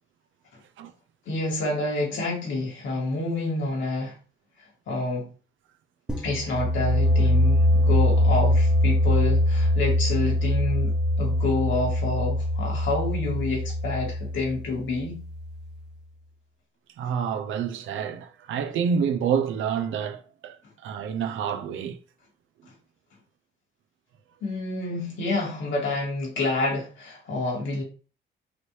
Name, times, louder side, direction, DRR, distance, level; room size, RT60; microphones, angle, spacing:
voice 1, 1.3-4.1 4.9-5.3 6.2-15.2 24.4-27.8, left 2 dB, 70° left, 2.4 m, -28 dB
sound 1, 6.1-15.7, left 1 dB, 5° right, 0.9 m, -23 dB
voice 2, 17.0-20.6 20.8-22.0, right 7 dB, 80° right, 0.6 m, -28 dB
5.0 x 2.7 x 3.2 m
cardioid pair, 90°, 20 cm